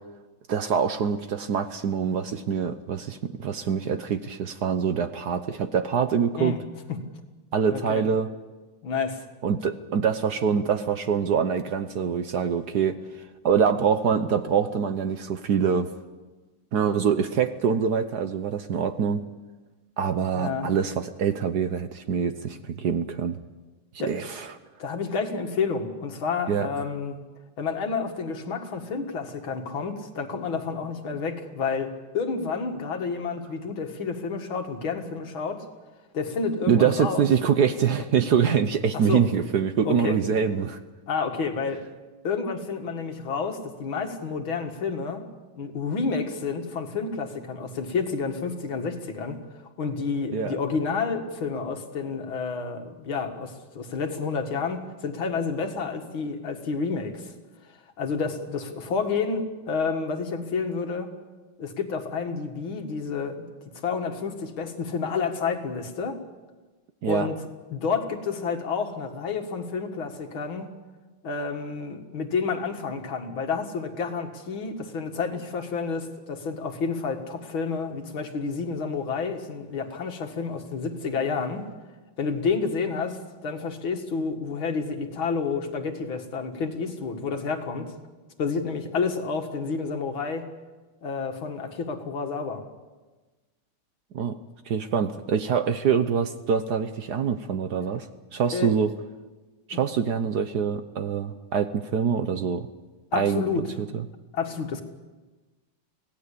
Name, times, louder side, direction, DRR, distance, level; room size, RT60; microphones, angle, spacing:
voice 1, 0.5-6.6 7.5-8.3 9.4-13.0 13.4-15.9 16.7-19.2 20.0-23.4 24.1-24.4 26.5-26.7 36.7-40.8 50.3-50.5 67.0-67.3 94.1-94.4 94.7-98.1 98.3-98.9 99.7-102.7 103.1-103.4 103.9-104.0, right 7 dB, 60° right, 10 dB, 1.3 m, -24 dB
voice 2, 7.7-8.1 8.8-9.2 20.3-20.7 24.0-24.1 24.8-27.2 27.6-35.7 36.1-37.3 38.9-39.2 39.8-40.2 41.1-41.8 42.2-45.3 45.6-57.3 58.0-61.1 61.6-63.5 63.8-66.2 67.1-67.4 67.7-70.7 71.2-81.7 82.2-87.9 88.4-90.5 91.0-92.6 98.5-98.7 99.7-99.8 103.1-103.6 104.3-104.8, left 5 dB, 70° left, 5 dB, 2.7 m, -30 dB
25.5 x 17.5 x 8.4 m, 1.2 s
omnidirectional pair, 2.3 m